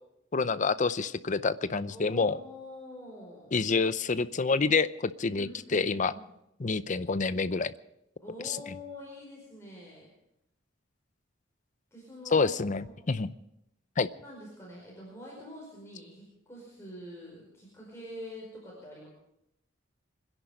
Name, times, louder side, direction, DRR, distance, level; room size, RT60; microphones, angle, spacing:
voice 1, 0.3-2.4 3.5-6.1 6.6-7.7 8.5-8.6 12.3-13.3 14.0-14.1, left 4 dB, 40° left, 14 dB, 0.6 m, -27 dB
voice 2, 1.9-3.5 5.3-6.3 8.2-10.1 11.9-12.5 12.8-12.9 14.2-19.1, left 1 dB, 15° left, -4 dB, 5.0 m, -46 dB
25.0 x 11.0 x 5.1 m, 0.83 s
head